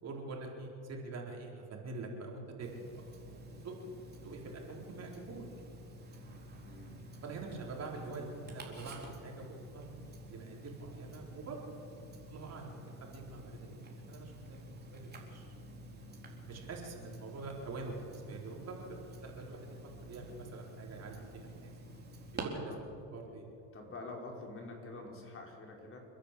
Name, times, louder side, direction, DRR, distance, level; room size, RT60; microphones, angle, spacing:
voice 1, 0.0-2.7 3.3-3.8 4.2-5.5 7.2-9.5 9.7-9.9 10.3-11.8 12.3-15.7 16.5-19.8 20.1-21.7 22.3-22.7 23.1-23.5, right 3 dB, 40° right, 0 dB, 4.5 m, -45 dB
Tick-tock, 2.6-22.4, right 1 dB, 25° right, 3.9 m, -50 dB
voice 2, 6.6-7.0 22.6-22.9 23.3-23.4 23.7-26.0, left 2 dB, 35° left, 0 dB, 4.8 m, -47 dB
29.5 x 10.5 x 8.6 m, 2.6 s
supercardioid pair, 105°, 38 cm